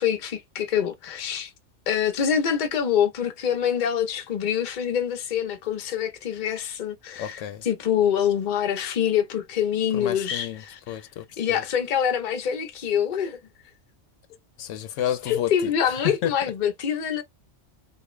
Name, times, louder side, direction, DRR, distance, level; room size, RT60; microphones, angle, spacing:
voice 1, 0.0-1.5 1.9-11.0 11.4-13.4 15.3-17.2, left 8 dB, 45° left, 0.7 m, -25 dB
voice 2, 7.2-7.6 9.9-10.6 10.9-11.6 14.6-15.5 16.0-16.3, left 11 dB, 80° left, 0.9 m, -30 dB
3.4 x 2.4 x 3.0 m
omnidirectional pair, 1.3 m